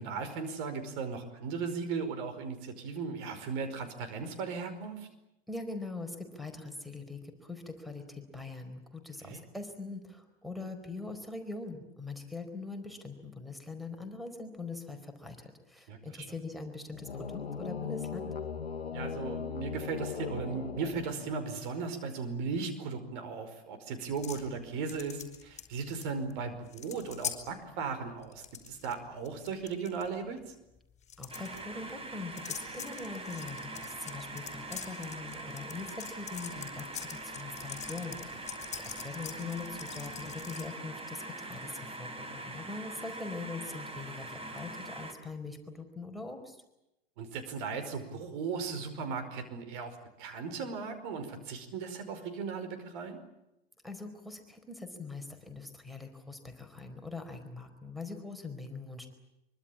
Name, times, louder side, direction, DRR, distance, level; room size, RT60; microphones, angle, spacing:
voice 1, 0.0-5.1 9.2-9.4 15.9-16.3 18.9-30.5 47.2-53.2, right 5 dB, 50° right, 8 dB, 5.3 m, -37 dB
voice 2, 5.5-18.3 31.2-46.6 53.8-59.1, left 3 dB, ahead, 8 dB, 4.5 m, -42 dB
sound 1, 16.9-21.6, left 6 dB, 80° left, 1.3 m, -38 dB
sound 2, 24.2-24.5 24.9-26.0 26.3-26.4 26.7-27.4 28.2-28.9 29.2-30.0 31.0-31.6 32.4-40.7, left 9 dB, 20° left, 5.4 m, -43 dB
sound 3, 31.3-45.1, right 2 dB, 20° right, 4.4 m, -43 dB
24.5 x 24.5 x 8.8 m, 0.88 s
figure-of-eight pair, 90°, 31 cm